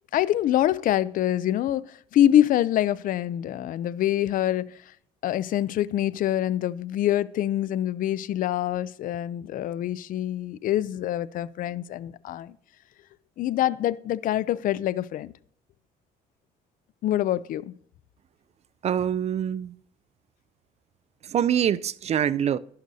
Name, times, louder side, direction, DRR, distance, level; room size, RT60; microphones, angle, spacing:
voice 1, 0.1-4.7 5.2-12.5 13.4-15.3 17.0-17.7, left 12 dB, 55° left, 0.4 m, -25 dB
voice 2, 18.8-19.7 21.3-22.6, right 9 dB, 40° right, 0.4 m, -24 dB
12.0 x 11.5 x 2.7 m
cardioid pair, 110°, 17 cm